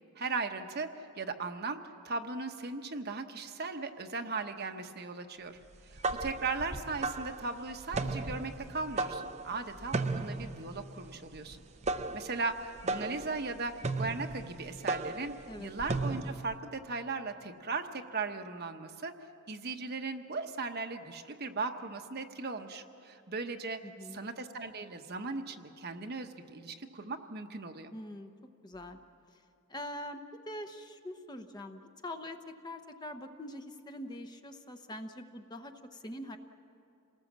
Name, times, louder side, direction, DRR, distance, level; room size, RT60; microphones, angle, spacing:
voice 1, 0.2-0.9 1.2-5.6 5.9-11.6 12.1-15.3 15.6-19.1 19.5-23.8 24.1-27.9, right 4 dB, 45° right, 6 dB, 1.0 m, -37 dB
sound 1, 5.7-16.5, right 3 dB, 30° right, 0.7 m, -36 dB
voice 2, 23.8-24.2 27.9-28.3 28.6-29.0 29.7-36.4, left 1 dB, 20° left, 6 dB, 0.9 m, -44 dB
28.0 x 19.0 x 7.4 m, 2.6 s
head